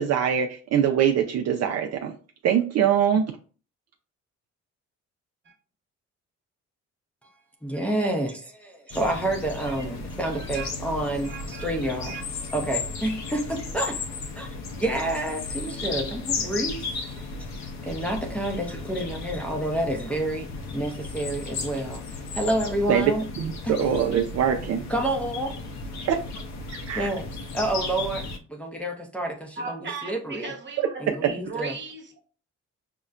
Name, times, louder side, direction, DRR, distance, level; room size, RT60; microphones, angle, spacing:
voice 1, 0.0-2.1 2.4-3.2 22.9-23.1 23.4-24.8 26.0-26.2 26.7-27.1 31.2-31.3, right 8 dB, 60° right, 0.5 m, -23 dB
voice 2, 7.6-12.2 12.5-14.0 14.3-14.5 14.8-16.9 17.4-17.5 17.8-23.3 23.6-23.7 24.9-25.6 26.9-30.5 31.0-31.8, right 1 dB, 5° left, 0.6 m, -29 dB
sound 1, 8.9-28.4, left 3 dB, 65° left, 0.6 m, -35 dB
voice 3, 10.3-10.7 11.2-11.7 12.0-12.2 29.6-32.2, right 4 dB, 40° right, 1.1 m, -37 dB
5.4 x 2.1 x 2.4 m
cardioid pair, 90°, 30 cm